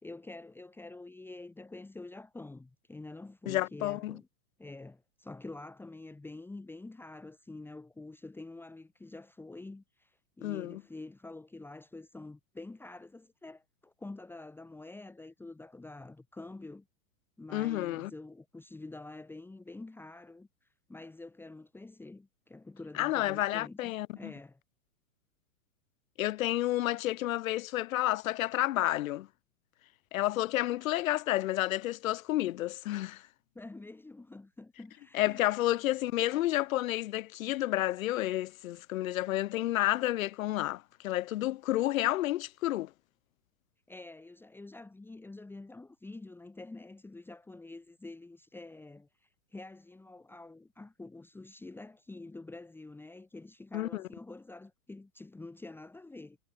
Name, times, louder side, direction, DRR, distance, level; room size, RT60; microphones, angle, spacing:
voice 1, 0.0-4.3 4.6-16.9 17.4-20.5 20.9-24.6 33.6-35.5 43.9-56.4, left 2 dB, 5° left, 2.0 m, -47 dB
voice 2, 3.5-4.2 10.4-10.8 17.5-18.1 23.0-24.3 26.2-29.3 30.1-33.2 35.1-42.9 53.7-54.0, left 15 dB, 65° left, 1.1 m, -30 dB
hypercardioid pair, 145°, 44 cm